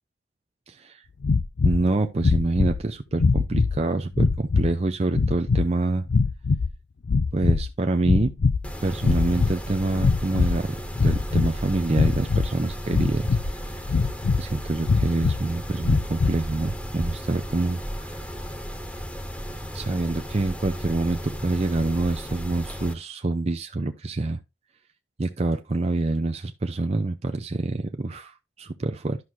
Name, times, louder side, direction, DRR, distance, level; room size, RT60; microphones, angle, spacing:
voice 1, 0.7-1.0 1.6-6.0 7.3-8.3 8.8-10.8 11.0-13.9 14.4-18.3 19.7-24.4 25.2-29.2, right 2 dB, 35° right, 0.6 m, -26 dB
sound 1, 1.2-1.8 2.2-2.8 3.2-3.8 4.1-4.7 5.1-5.6 6.1-6.7 7.0-7.7 8.0-8.7 9.0-9.6 10.0-10.6 10.9-11.5 11.9-12.5 12.9-13.5 13.9-14.5 14.8-15.4 15.8-16.4, left 4 dB, 80° left, 0.5 m, -22 dB
Mechanisms, 8.6-22.9, equal, 5° left, 1.2 m, -35 dB
11.5 x 6.0 x 2.8 m
head